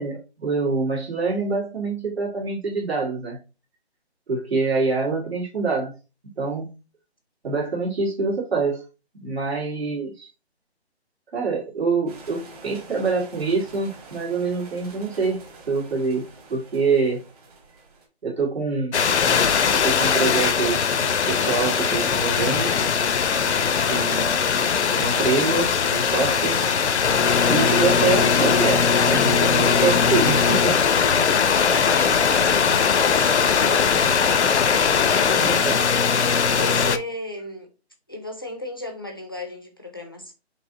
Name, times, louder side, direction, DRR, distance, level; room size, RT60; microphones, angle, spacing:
voice 1, 0.0-3.4 4.3-5.9 6.4-6.8 7.4-8.8 9.2-10.3 11.3-17.2 18.2-19.0 19.7-20.8 21.3-22.7 23.9-24.4 24.9-26.6 27.4-30.8 33.9-34.1 35.4-35.8, right 4 dB, 65° right, 2.3 m, -25 dB
sound 1, 12.1-18.1, right 3 dB, 35° right, 1.5 m, -46 dB
sound 2, 18.9-37.0, left 6 dB, 80° left, 0.6 m, -20 dB
voice 2, 30.9-34.3 35.3-35.8 36.4-37.7 38.1-40.3, left 1 dB, 20° left, 0.4 m, -35 dB
5.2 x 2.9 x 2.8 m
figure-of-eight pair, 160°, 33 cm